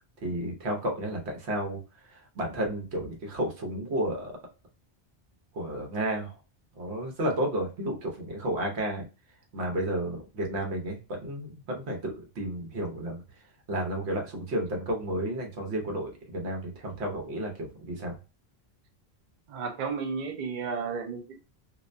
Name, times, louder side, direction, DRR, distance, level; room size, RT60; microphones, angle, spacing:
voice 1, 0.2-1.8 2.1-4.4 5.5-6.3 6.8-9.1 9.5-13.2 13.7-18.1, right 1 dB, 80° right, 1.1 m, -32 dB
voice 2, 19.5-21.4, right 5 dB, 55° right, 0.6 m, -33 dB
2.6 x 2.1 x 2.4 m
omnidirectional pair, 1.1 m